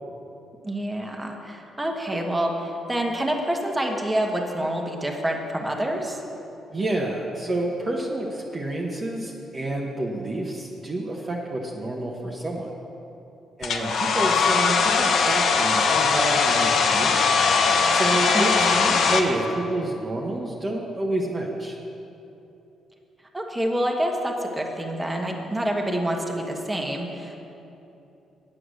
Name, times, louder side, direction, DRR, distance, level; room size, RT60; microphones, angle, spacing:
voice 1, 0.6-6.2 18.3-19.0 23.3-27.4, right 1 dB, 15° right, 1 dB, 1.3 m, -27 dB
voice 2, 6.7-12.7 13.6-17.3 17.9-21.8, right 1 dB, 30° right, -2 dB, 1.1 m, -29 dB
Domestic sounds home sounds, 13.6-19.2, left 5 dB, 65° left, 0.8 m, -20 dB
8.6 x 8.1 x 6.4 m, 2.9 s
cardioid pair, 90°, 0 cm